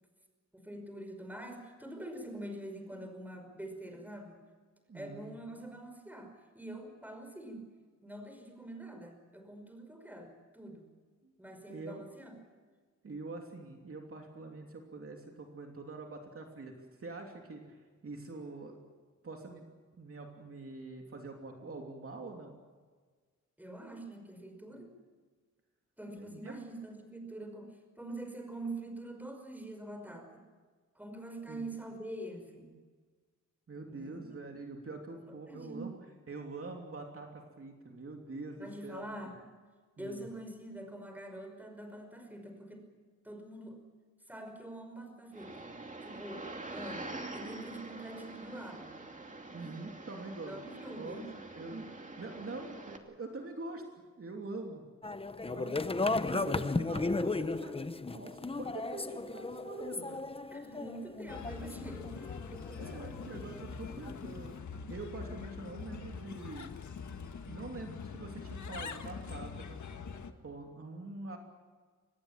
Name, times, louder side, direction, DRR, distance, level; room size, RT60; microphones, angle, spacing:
voice 1, 0.5-4.4 4.9-7.7 8.0-10.9 11.4-12.3 23.6-24.9 26.0-30.4 31.0-32.8 33.9-34.2 35.3-35.9 38.6-39.4 40.0-42.9 43.2-43.8 44.3-45.7 46.0-49.0 49.6-49.7 50.5-51.3 56.3-56.7 60.5-62.3, right 1 dB, 5° right, 5 dB, 5.4 m, -45 dB
voice 2, 4.9-5.5 11.7-12.0 13.0-16.7 17.0-18.8 19.2-19.7 20.0-22.5 26.2-26.6 31.5-31.7 33.7-35.9 36.3-39.0 40.0-40.3 49.5-50.5 50.9-51.9 52.2-53.8 54.2-54.8 55.4-57.7 58.1-60.3 62.5-64.6 64.9-66.7 67.5-69.8 70.4-71.4, right 3 dB, 50° right, 2 dB, 3.0 m, -45 dB
sound 1, 45.3-53.0, right 2 dB, 25° right, 2.7 m, -45 dB
sound 2, 55.0-64.6, left 3 dB, 20° left, 0.8 m, -36 dB
Bird, 61.3-70.3, left 5 dB, 75° left, 1.7 m, -44 dB
25.5 x 20.0 x 7.6 m, 1.5 s
wide cardioid pair, 125°, 29 cm